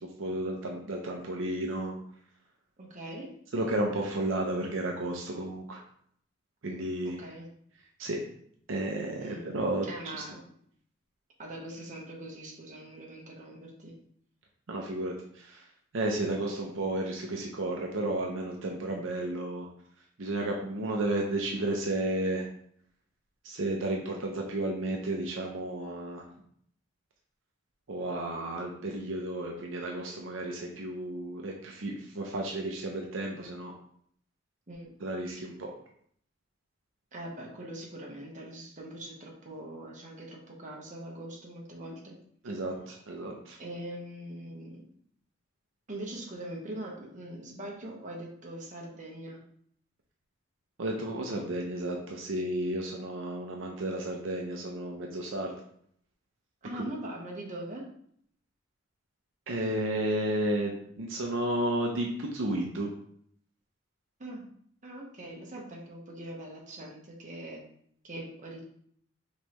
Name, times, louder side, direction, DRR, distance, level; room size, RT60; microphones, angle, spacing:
voice 1, 0.2-1.9 3.5-5.8 6.6-7.2 8.0-8.2 8.7-10.2 14.7-15.6 15.9-19.7 20.2-22.5 23.4-26.2 27.9-33.7 35.0-35.7 42.4-43.6 50.8-55.5 56.7-56.8 59.5-62.9, right 1 dB, 75° right, 0 dB, 0.6 m, -32 dB
voice 2, 2.8-3.3 7.2-7.5 9.2-9.4 9.8-10.4 11.4-13.9 34.7-34.9 37.1-42.2 43.6-44.8 45.9-49.4 56.6-57.9 64.2-64.4 64.8-67.6 68.0-68.6, right 1 dB, 40° right, -2 dB, 1.1 m, -42 dB
5.3 x 3.2 x 3.0 m, 0.65 s
head